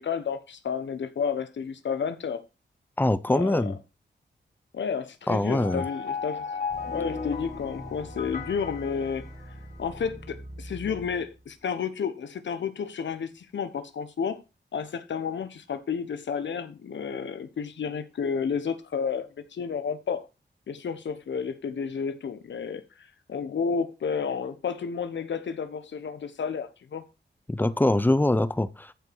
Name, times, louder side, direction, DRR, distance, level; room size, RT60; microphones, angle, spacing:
voice 1, 0.0-2.4 3.3-3.7 4.7-6.5 6.9-9.3 9.8-14.4 14.7-20.2 20.7-27.0, left 6 dB, 85° left, 1.2 m, -31 dB
voice 2, 3.0-3.8 5.3-5.8 27.5-28.9, left 1 dB, 10° left, 0.6 m, -23 dB
sound 1, 5.5-9.8, left 5 dB, 45° left, 2.2 m, -35 dB
sound 2, 6.7-11.6, right 1 dB, 20° right, 1.8 m, -43 dB
14.0 x 5.1 x 4.7 m
wide cardioid pair, 150°, 18 cm